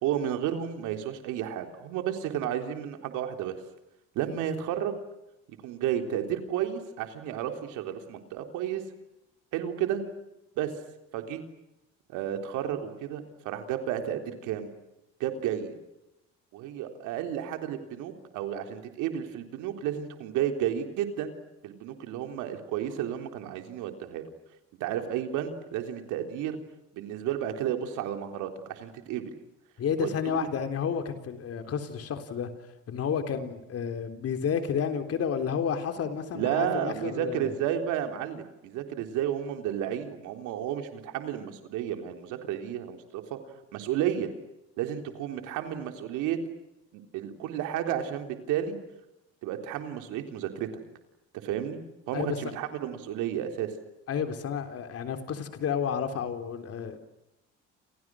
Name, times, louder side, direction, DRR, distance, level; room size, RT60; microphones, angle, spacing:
voice 1, 0.0-3.6 4.2-5.0 5.6-8.8 9.5-10.0 10.6-10.7 11.1-11.4 12.1-14.7 15.2-15.7 16.5-21.3 21.6-24.2 24.8-26.6 26.9-29.3 30.0-30.5 36.3-43.4 43.7-44.3 44.8-46.4 46.9-48.8 49.4-50.7 51.3-51.8 52.1-53.7, right 10 dB, 85° right, 6 dB, 3.8 m, -32 dB
voice 2, 29.8-32.5 32.9-37.5 52.1-52.4 54.1-57.0, left 7 dB, 55° left, 7 dB, 3.8 m, -31 dB
29.5 x 29.0 x 6.4 m, 0.93 s
cardioid pair, 95°, 29 cm